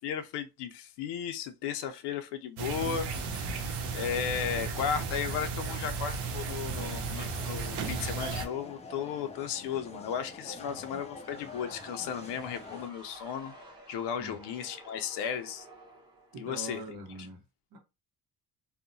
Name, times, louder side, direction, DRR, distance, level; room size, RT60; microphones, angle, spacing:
voice 1, 0.0-3.5 3.9-13.5 13.9-15.7 16.4-16.8, left 8 dB, 85° left, 0.5 m, -35 dB
sound 1, 2.6-8.5, right 4 dB, 80° right, 0.7 m, -34 dB
sound 2, 6.7-12.9, left 3 dB, 20° left, 0.3 m, -45 dB
sound 3, 11.2-17.0, right 1 dB, 10° right, 0.8 m, -53 dB
voice 2, 16.3-17.4 17.7-17.8, right 1 dB, 65° right, 1.0 m, -43 dB
2.7 x 2.1 x 2.5 m
cardioid pair, 115°, 40 cm